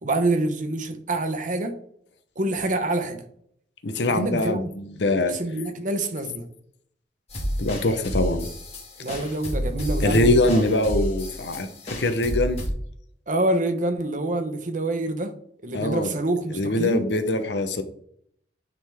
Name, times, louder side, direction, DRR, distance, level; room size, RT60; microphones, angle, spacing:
voice 1, 0.0-1.7 2.4-3.2 4.1-4.6 5.3-6.4 9.0-10.6 13.3-15.3 15.6-17.0, right 2 dB, 50° right, 0.9 m, -26 dB
voice 2, 3.8-5.4 7.6-8.5 10.0-12.6 15.7-16.1 16.5-17.8, left 2 dB, 80° left, 0.9 m, -23 dB
sound 1, 7.3-12.7, equal, 35° left, 2.0 m, -30 dB
9.1 x 3.8 x 3.5 m
head